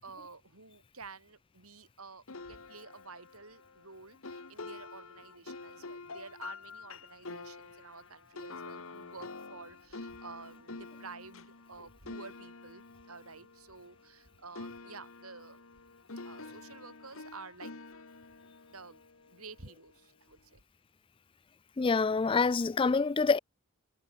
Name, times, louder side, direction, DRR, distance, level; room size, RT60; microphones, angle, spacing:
voice 1, 0.0-15.7 16.2-17.8 18.7-20.6, right 4 dB, 80° right, 5.3 m, -51 dB
sound 1, 2.3-14.3 14.6-19.8, left 3 dB, 70° left, 1.6 m, -47 dB
voice 2, 21.8-23.4, left 4 dB, 25° left, 0.3 m, -26 dB
head